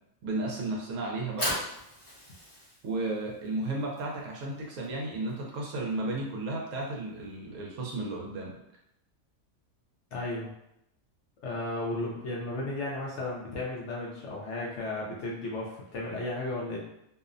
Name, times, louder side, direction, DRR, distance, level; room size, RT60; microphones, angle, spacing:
voice 1, 0.2-1.6 2.8-8.6, right 2 dB, 70° right, -1 dB, 0.9 m, -33 dB
Fire, 1.1-7.3, left 1 dB, 25° left, 0.8 m, -40 dB
voice 2, 10.1-10.5 11.4-16.9, left 2 dB, 65° left, -3 dB, 0.7 m, -34 dB
2.6 x 2.0 x 2.5 m, 0.80 s
omnidirectional pair, 1.5 m